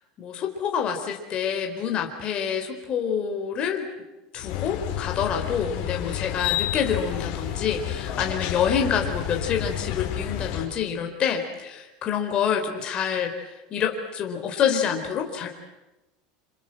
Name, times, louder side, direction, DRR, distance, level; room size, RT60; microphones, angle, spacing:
voice 1, 0.2-3.9 4.3-13.3 13.7-15.5, left 7 dB, 30° left, 3 dB, 4.2 m, -27 dB
sound 1, 4.4-10.7, left 11 dB, 55° left, 5.0 m, -30 dB
28.0 x 27.0 x 7.8 m, 1.0 s
supercardioid pair, 155°, 3 cm